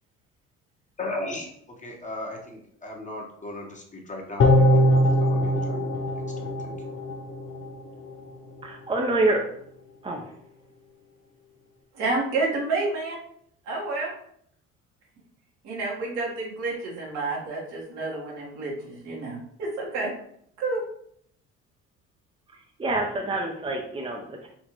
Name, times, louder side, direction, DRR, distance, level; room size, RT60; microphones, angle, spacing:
voice 1, 1.0-6.0 6.4-7.0, left 1 dB, 25° left, 0 dB, 1.3 m, -37 dB
sound 1, 4.4-7.7 8.1-8.2, left 1 dB, 45° left, 0.8 m, -21 dB
voice 2, 8.6-9.4 10.0-10.3 22.8-24.5, right 2 dB, 20° right, 0 dB, 0.7 m, -26 dB
voice 3, 11.9-13.2 13.7-14.1 15.6-20.1 20.6-20.8, right 3 dB, 75° right, -3 dB, 1.6 m, -29 dB
4.3 x 2.8 x 3.1 m, 0.66 s
hypercardioid pair, 65°, 31 cm